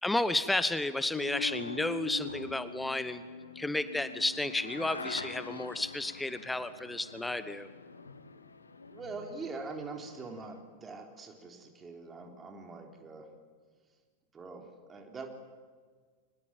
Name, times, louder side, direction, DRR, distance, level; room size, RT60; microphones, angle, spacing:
voice 1, 0.0-3.2 3.5-7.7, left 2 dB, 5° left, 13 dB, 1.1 m, -32 dB
sound 1, 1.1-10.6, left 3 dB, 75° left, 1.6 m, -44 dB
voice 2, 4.7-5.1 8.9-13.3 14.3-15.3, right 3 dB, 20° right, 3 dB, 3.7 m, -44 dB
25.5 x 19.5 x 9.1 m, 1.6 s
figure-of-eight pair, 90°, 0 cm